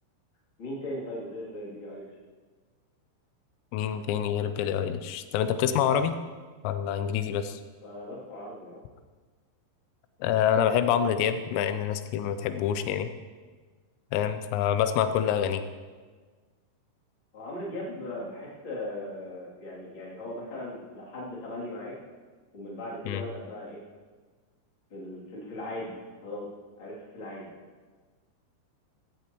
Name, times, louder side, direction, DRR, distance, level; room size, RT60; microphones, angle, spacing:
voice 1, 0.6-2.1 7.8-8.8 17.3-21.9 22.5-23.8 24.9-26.5 26.8-27.5, left 1 dB, 30° left, -6 dB, 2.8 m, -38 dB
voice 2, 3.7-6.1 6.6-7.6 10.2-13.1 14.1-15.6 23.1-23.2, left 9 dB, 85° left, 10 dB, 3.4 m, -26 dB
15.5 x 15.0 x 3.1 m, 1.4 s
omnidirectional pair, 6.0 m